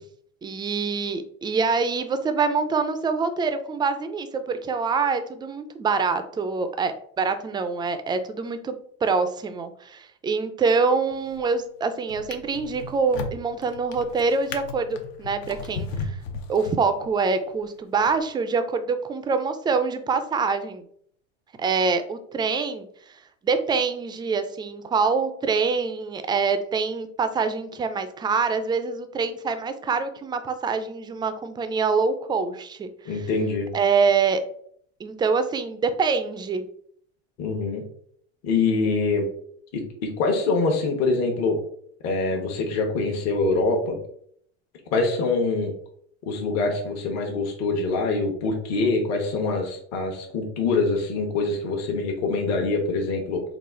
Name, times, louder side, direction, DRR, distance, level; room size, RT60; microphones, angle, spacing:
voice 1, 0.4-8.7 9.0-16.2 16.5-20.8 21.6-22.9 23.4-33.2 33.7-34.4 35.0-36.7, right 5 dB, 15° right, 9 dB, 0.3 m, -25 dB
Drawer open or close, 11.1-11.6 12.1-17.3 18.0-18.2, left 4 dB, 70° left, 0.8 m, -36 dB
voice 2, 33.1-33.7 37.4-37.8 38.4-39.3 39.7-41.6 42.0-44.0 44.9-45.7 46.3-53.4, left 3 dB, 55° left, 1 dB, 1.1 m, -24 dB
4.0 x 2.4 x 3.7 m, 0.63 s
supercardioid pair, 115°, 32 cm